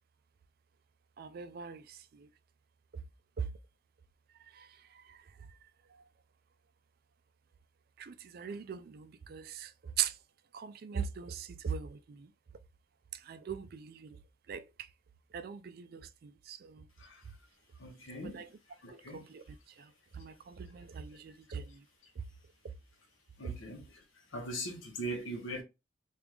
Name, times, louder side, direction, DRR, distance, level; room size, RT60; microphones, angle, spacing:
voice 1, 1.2-2.3 3.4-3.5 4.5-4.7 5.1-5.2 8.0-10.1 10.5-12.3 13.1-14.2 14.5-14.6 15.3-16.8 18.2-18.5 18.9-19.4 19.8-21.8 23.4-23.5, right 7 dB, 50° right, 0.3 m, -40 dB
voice 2, 17.8-18.4 18.8-19.2 23.4-23.8 24.3-25.6, right 1 dB, 85° left, 1.0 m, -40 dB
3.4 x 2.4 x 3.1 m
head